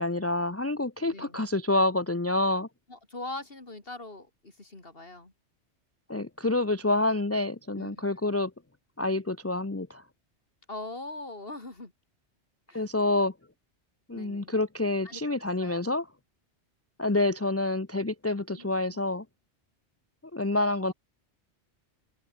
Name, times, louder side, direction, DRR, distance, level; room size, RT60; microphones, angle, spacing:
voice 1, 0.0-2.7 6.1-8.5 9.0-10.0 12.7-13.3 14.1-16.1 17.0-19.2 20.3-20.9, left 2 dB, 15° left, 0.8 m, -27 dB
voice 2, 2.9-5.3 7.8-8.0 10.7-11.9 12.7-12.8 14.1-14.5 15.0-15.2 15.6-15.8 18.5-19.0 20.8-20.9, left 2 dB, 55° left, 3.5 m, -42 dB
open air
omnidirectional pair, 1.2 m